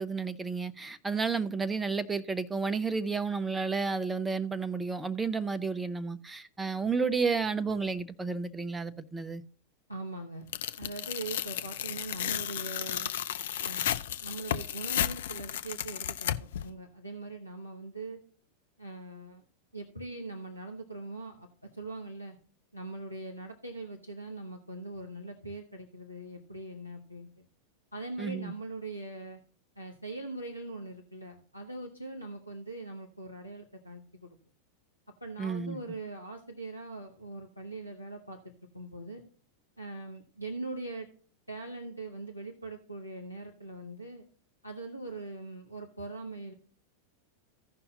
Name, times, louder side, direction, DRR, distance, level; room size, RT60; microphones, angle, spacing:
voice 1, 0.0-9.4 28.2-28.5 35.4-35.8, right 4 dB, 10° right, 0.6 m, -31 dB
voice 2, 9.9-10.5 10.8-13.1 13.6-18.2 18.8-19.4 19.7-22.4 22.7-27.3 27.9-29.4 29.8-34.4 35.2-39.2 39.8-41.1 41.5-44.2 44.6-46.5, right 2 dB, 90° left, 1.0 m, -41 dB
Tearing, 10.5-16.6, left 11 dB, 60° left, 0.4 m, -33 dB
16.0 x 5.6 x 2.7 m
figure-of-eight pair, 90°, 0 cm